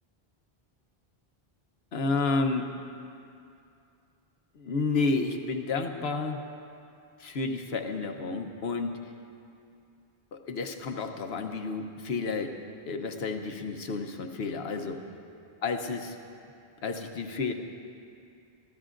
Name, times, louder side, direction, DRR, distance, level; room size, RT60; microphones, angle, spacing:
voice 1, 1.9-2.7 4.6-6.4 7.2-9.0 10.3-12.5 12.9-15.0 15.6-16.1 16.8-17.5, left 3 dB, 80° left, 5 dB, 1.2 m, -31 dB
26.0 x 14.0 x 2.5 m, 2.5 s
omnidirectional pair, 1.0 m